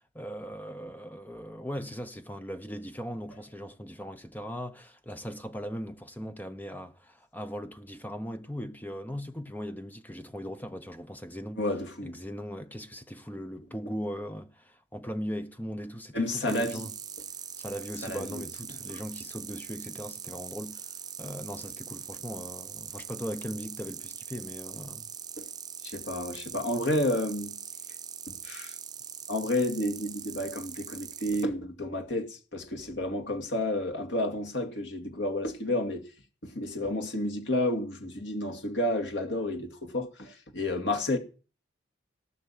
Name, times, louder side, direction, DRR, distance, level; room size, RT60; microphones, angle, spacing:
voice 1, 0.1-11.6 12.0-16.9 17.6-20.9 21.2-25.1, equal, 10° left, 1.0 m, -39 dB
voice 2, 11.6-12.1 16.1-16.9 18.0-18.4 25.4-25.5 25.8-27.6 28.3-28.7 29.3-36.1 36.4-41.2, left 1 dB, 60° left, 2.3 m, -31 dB
sound 1, 16.5-31.4, right 7 dB, 20° right, 0.9 m, -42 dB
17.5 x 6.2 x 8.7 m
head